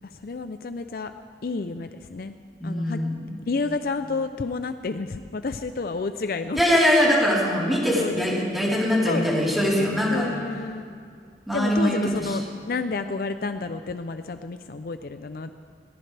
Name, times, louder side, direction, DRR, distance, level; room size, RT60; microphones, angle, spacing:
voice 1, 0.0-1.1 1.4-2.4 2.6-3.0 3.5-6.8 8.0-8.3 9.1-9.3 10.1-10.9 11.5-15.5, left 3 dB, 55° left, 9 dB, 0.5 m, -30 dB
voice 2, 2.6-3.3 6.5-10.3 11.5-12.4, equal, ahead, -7 dB, 3.8 m, -22 dB
21.5 x 18.5 x 3.4 m, 2.3 s
head